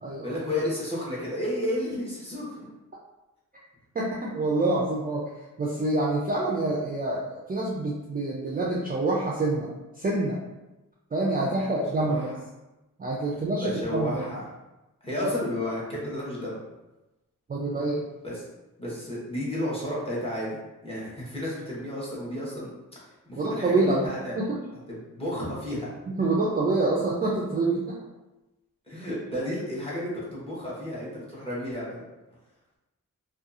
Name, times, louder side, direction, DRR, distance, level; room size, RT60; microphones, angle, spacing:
voice 1, 0.2-2.7 11.5-11.7 12.0-12.2 13.6-14.4 15.0-16.6 18.2-18.4 18.8-20.6 20.8-22.7 23.3-24.4 25.1-25.9 28.9-32.1, left 1 dB, 15° left, -7 dB, 0.9 m, -32 dB
voice 2, 3.9-5.3 5.6-9.7 10.0-10.4 11.1-12.3 13.0-14.2 15.2-15.3 17.5-18.0 23.4-24.1 24.3-24.6 26.1-28.0, right 2 dB, 25° right, -4 dB, 0.3 m, -26 dB
2.6 x 2.3 x 2.4 m, 1.0 s
wide cardioid pair, 100°, 34 cm